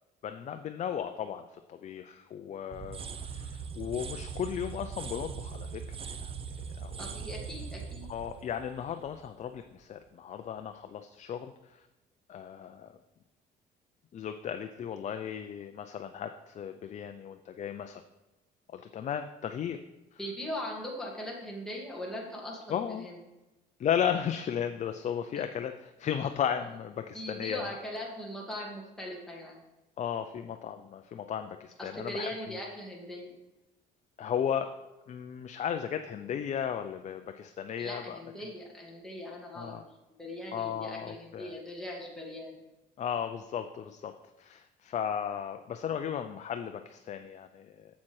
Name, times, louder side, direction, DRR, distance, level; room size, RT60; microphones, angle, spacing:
voice 1, 0.2-1.4 1.7-5.8 6.2-6.3 6.8-7.1 8.1-11.8 12.3-12.9 14.1-18.0 18.7-19.8 20.1-20.2 22.7-23.1 23.8-27.7 30.0-32.5 34.2-34.7 35.1-38.2 39.6-39.8 40.5-41.5 43.0-44.1 44.4-47.9, left 8 dB, 45° left, 7 dB, 0.6 m, -35 dB
sound 1, 2.7-9.6, right 6 dB, 35° right, 0.7 m, -41 dB
voice 2, 7.0-8.1 20.2-23.2 27.1-29.6 31.8-33.4 37.8-39.8 40.2-42.6, left 1 dB, 5° left, -3 dB, 2.3 m, -40 dB
7.4 x 7.2 x 4.8 m, 1.0 s
cardioid pair, 110°, 17 cm